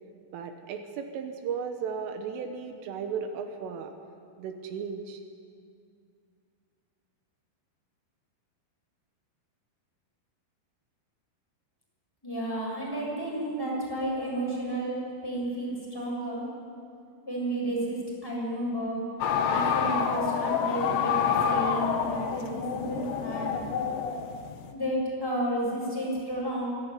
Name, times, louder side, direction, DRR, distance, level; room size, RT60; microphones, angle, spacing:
voice 1, 0.3-3.9 4.4-5.2, right 6 dB, 80° right, 6 dB, 3.7 m, -35 dB
voice 2, 12.2-16.5 17.2-19.0 19.5-21.2 21.4-23.6 24.7-26.7, right 1 dB, 5° left, -4 dB, 6.8 m, -32 dB
sound 1, 19.2-24.7, left 7 dB, 70° left, 3.3 m, -28 dB
24.0 x 15.5 x 9.4 m, 2.3 s
omnidirectional pair, 5.9 m